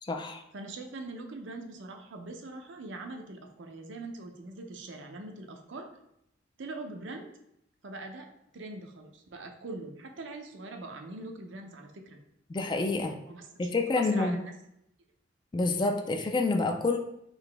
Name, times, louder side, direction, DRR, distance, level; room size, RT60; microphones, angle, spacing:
voice 1, 0.0-0.4 12.5-13.2 13.6-14.4 15.5-17.0, left 3 dB, 25° left, 4 dB, 0.3 m, -28 dB
voice 2, 0.5-5.9 6.6-7.3 7.8-12.2 13.3-13.4 14.0-14.5, right 2 dB, 70° right, 4 dB, 0.6 m, -42 dB
3.9 x 2.7 x 3.3 m, 0.78 s
head